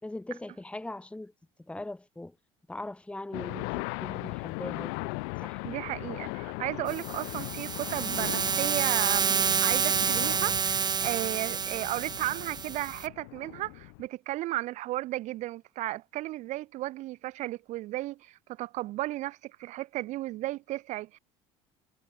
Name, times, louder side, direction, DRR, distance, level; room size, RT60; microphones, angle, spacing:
voice 1, 0.0-1.3 1.6-2.4 2.7-5.1 5.4-5.6, left 2 dB, 10° left, 3.0 m, -40 dB
sound 1, 3.3-14.1, left 40 dB or more, 80° left, 0.7 m, -38 dB
voice 2, 5.6-21.2, right 17 dB, 65° right, 3.5 m, -34 dB
sound 2, 6.9-13.1, right 6 dB, 30° right, 1.3 m, -29 dB
supercardioid pair, 90°, 13 cm